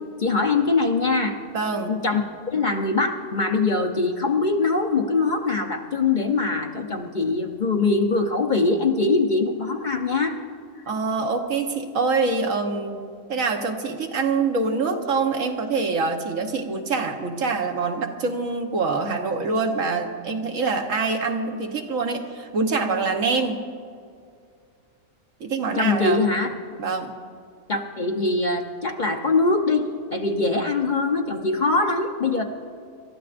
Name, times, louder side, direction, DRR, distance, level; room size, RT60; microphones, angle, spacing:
voice 1, 0.2-1.4 1.9-10.4 25.8-26.5 27.7-32.4, left 3 dB, 40° left, 3 dB, 0.9 m, -22 dB
voice 2, 1.5-2.0 10.9-13.0 13.3-23.6 25.4-26.3 26.8-27.1, right 4 dB, 75° right, 4 dB, 1.5 m, -25 dB
28.5 x 13.5 x 2.5 m, 2.2 s
omnidirectional pair, 1.4 m